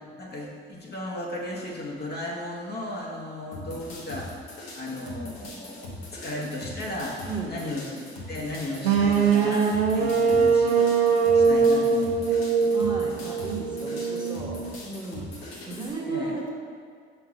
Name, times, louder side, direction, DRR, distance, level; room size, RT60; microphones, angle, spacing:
voice 1, 0.1-4.3 4.7-7.2 7.5-7.8 8.3-10.9 11.3-12.4 16.1-16.4, left 1 dB, 35° left, -3 dB, 1.1 m, -35 dB
sound 1, 3.5-15.9, left 2 dB, 80° left, 1.0 m, -40 dB
voice 2, 7.3-7.6 12.7-14.6 14.8-16.5, right 4 dB, 15° right, -3 dB, 1.4 m, -34 dB
sound 2, 8.8-14.7, right 5 dB, 85° right, 0.5 m, -22 dB
5.6 x 3.3 x 5.2 m, 2.1 s
figure-of-eight pair, 45°, 30 cm